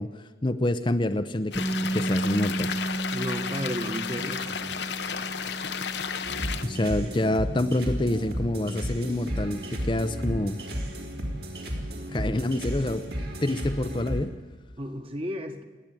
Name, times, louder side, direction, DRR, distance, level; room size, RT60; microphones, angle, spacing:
voice 1, 0.0-2.7 6.6-10.6 12.1-13.1 13.4-14.3, left 1 dB, 30° left, 9 dB, 0.7 m, -27 dB
sound 1, 1.5-6.6, left 7 dB, 80° left, 1.1 m, -33 dB
sound 2, 1.5-13.4, right 1 dB, 5° left, 1.0 m, -36 dB
voice 2, 3.1-4.7 14.8-15.6, equal, 35° right, 6 dB, 1.6 m, -33 dB
sound 3, 6.2-14.2, equal, 60° right, 3.5 m, -33 dB
29.0 x 10.0 x 9.1 m, 1.3 s
head